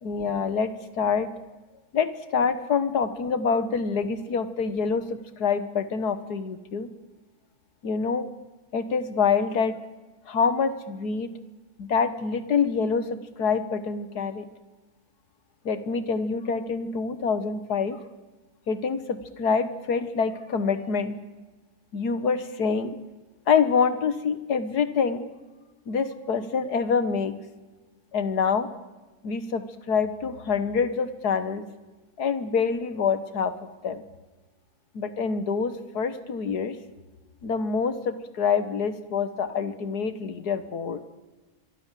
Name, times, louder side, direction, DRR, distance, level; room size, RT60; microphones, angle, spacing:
voice 1, 0.0-1.3 1.9-6.9 7.8-8.3 8.7-9.8 10.3-11.3 11.8-14.5 15.7-18.0 18.7-21.2 21.9-23.0 23.5-25.3 25.9-27.3 28.1-28.7 29.2-31.6 32.2-33.5 33.8-34.0 34.9-36.8 37.4-41.0, left 5 dB, 85° left, 13 dB, 2.1 m, -26 dB
25.5 x 24.0 x 7.6 m, 1.2 s
omnidirectional pair, 1.6 m